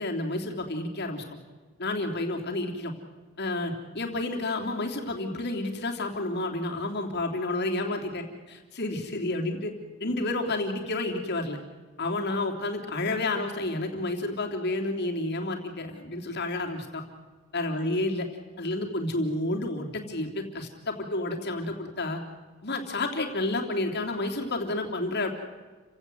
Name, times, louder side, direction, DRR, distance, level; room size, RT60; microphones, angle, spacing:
voice 1, 0.0-1.4 1.8-2.9 3.4-9.7 10.0-11.6 12.0-17.0 17.5-18.3 18.6-22.2 22.6-25.3, left 2 dB, 50° left, 2 dB, 3.3 m, -30 dB
29.5 x 17.0 x 8.0 m, 1.4 s
head